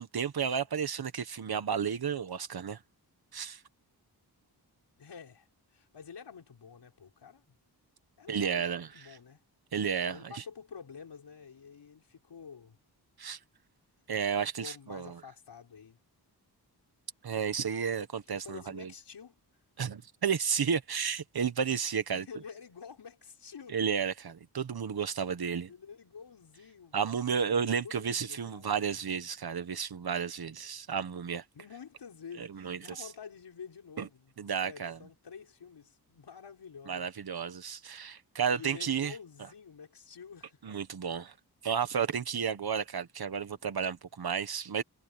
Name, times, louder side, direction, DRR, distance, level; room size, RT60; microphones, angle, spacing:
voice 1, 0.0-2.8 3.3-3.6 8.3-8.9 9.7-10.4 13.2-13.4 14.1-15.2 17.2-18.9 19.8-22.3 23.7-25.7 26.9-31.4 32.4-32.8 34.0-34.1 34.4-35.0 36.9-39.1 40.6-41.3 41.6-44.8, right 7 dB, 65° right, 1.5 m, -32 dB
voice 2, 5.0-7.6 8.2-9.4 10.1-12.8 14.4-16.0 18.3-19.4 22.1-23.8 25.7-27.1 27.4-29.1 31.5-34.3 34.6-37.1 38.5-40.6, left 6 dB, 80° left, 5.5 m, -49 dB
wide cardioid pair, 145°, 40 cm